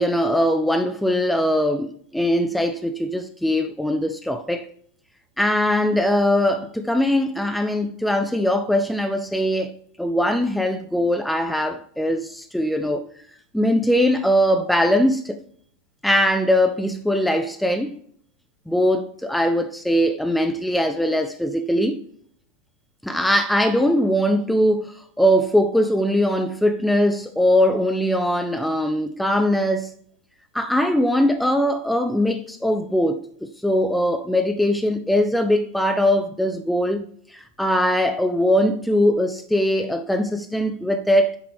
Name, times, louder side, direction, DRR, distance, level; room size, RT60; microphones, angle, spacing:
voice 1, 0.0-4.7 5.4-13.1 13.5-15.4 16.0-18.0 18.7-22.0 23.0-29.9 30.5-41.4, equal, ahead, 0.4 m, -21 dB
7.0 x 4.6 x 3.3 m
figure-of-eight pair, 90°, 0 cm